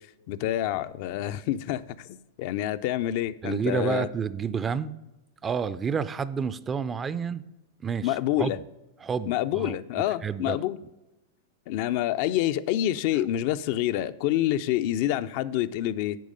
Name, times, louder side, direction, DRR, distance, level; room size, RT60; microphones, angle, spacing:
voice 1, 0.3-4.1 8.0-8.6 9.3-10.8 11.7-16.2, left 13 dB, 55° left, 0.4 m, -27 dB
voice 2, 3.4-4.9 5.4-7.4 7.8-8.5 9.0-10.6, right 6 dB, 20° right, 0.4 m, -30 dB
9.3 x 4.8 x 5.2 m
hypercardioid pair, 105°, 0 cm